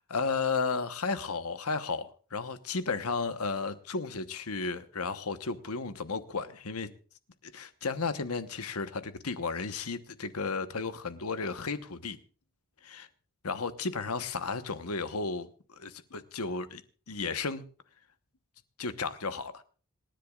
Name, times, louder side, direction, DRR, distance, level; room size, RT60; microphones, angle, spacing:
voice 1, 0.0-6.9 7.4-12.2 12.8-13.0 13.4-16.8 17.1-17.6 18.8-19.6, left 4 dB, 85° left, 1.1 m, -33 dB
27.0 x 10.5 x 2.4 m
head